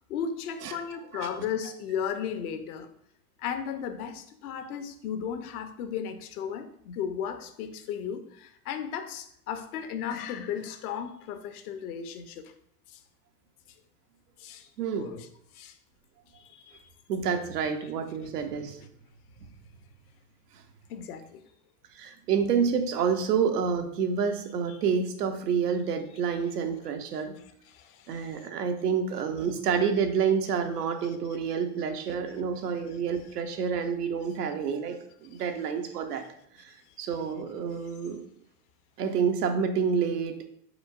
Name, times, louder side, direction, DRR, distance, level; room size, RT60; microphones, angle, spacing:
voice 1, 0.1-2.9 3.4-12.5 12.9-13.0 14.4-14.7 15.0-15.3 15.5-15.8 16.3-16.8 20.9-21.4 27.7-28.5 35.3-35.4, left 8 dB, 70° left, 9 dB, 0.8 m, -35 dB
voice 2, 14.8-15.1 17.1-18.9 21.9-27.3 28.1-36.2 36.6-38.2 39.0-40.4, right 6 dB, 90° right, 6 dB, 0.8 m, -28 dB
5.0 x 3.9 x 2.5 m, 0.68 s
hypercardioid pair, 95°, 46 cm